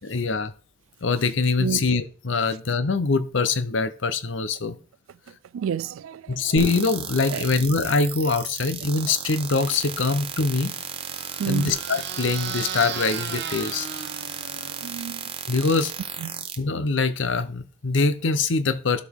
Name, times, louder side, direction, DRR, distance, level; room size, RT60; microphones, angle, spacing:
voice 1, 0.0-0.5 1.0-4.8 6.3-10.7 11.5-13.9 15.5-15.9 16.6-19.0, left 4 dB, 65° left, 0.7 m, -23 dB
voice 2, 5.5-6.5 7.3-7.5 11.4-11.8 14.8-15.3 16.2-16.5, right 8 dB, 85° right, 0.3 m, -30 dB
sound 1, 6.6-16.6, right 7 dB, 25° right, 0.9 m, -35 dB
sound 2, 10.6-15.1, right 6 dB, 55° right, 1.2 m, -36 dB
12.0 x 5.1 x 3.6 m
head